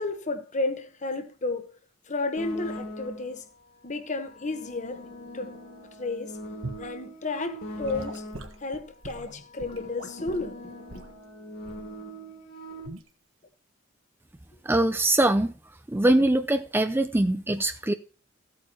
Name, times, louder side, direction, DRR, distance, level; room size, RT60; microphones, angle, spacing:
voice 1, 0.0-1.7 2.1-3.5 3.8-5.0 5.3-5.5 6.0-6.4 6.8-8.3 8.6-10.6 10.9-11.0, left 3 dB, 35° left, 1.2 m, -32 dB
sound 1, 2.4-3.4 4.2-8.7 9.5-12.9, equal, 55° left, 2.6 m, -41 dB
Gurgling / Sink (filling or washing) / Liquid, 6.6-6.9 7.8-10.5 10.9-11.1 11.6-11.9 12.8-13.1, right 2 dB, 75° right, 1.6 m, -41 dB
voice 2, 14.6-15.5 15.9-17.9, right 1 dB, 10° right, 0.4 m, -22 dB
15.0 x 8.7 x 3.0 m
head